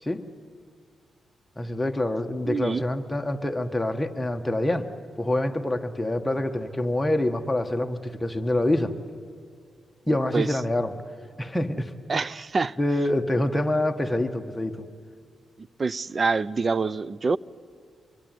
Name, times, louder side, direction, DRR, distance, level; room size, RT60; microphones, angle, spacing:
voice 1, 1.6-4.9 5.2-8.9 10.1-10.9 11.4-11.9 12.8-14.8, left 1 dB, 10° left, 1.7 m, -26 dB
voice 2, 2.5-2.8 10.3-10.5 12.1-12.8 15.8-17.4, right 4 dB, 40° right, 0.6 m, -25 dB
25.0 x 22.5 x 9.3 m
cardioid pair, 80°, 0 cm